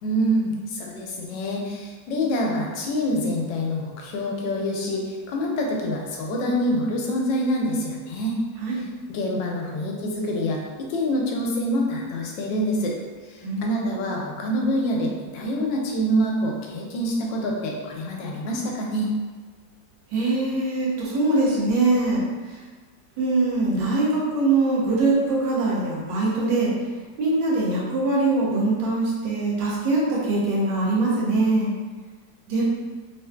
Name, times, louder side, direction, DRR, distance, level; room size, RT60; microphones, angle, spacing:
voice 1, 0.0-8.4 9.1-10.6 10.9-12.9 13.3-19.1, equal, 90° left, -1 dB, 1.3 m, -26 dB
voice 2, 13.4-14.1 20.1-22.6 23.2-26.7 27.2-31.7 32.5-32.6, right 2 dB, 90° right, -5 dB, 1.5 m, -23 dB
3.4 x 2.5 x 2.2 m, 1.4 s
omnidirectional pair, 1.9 m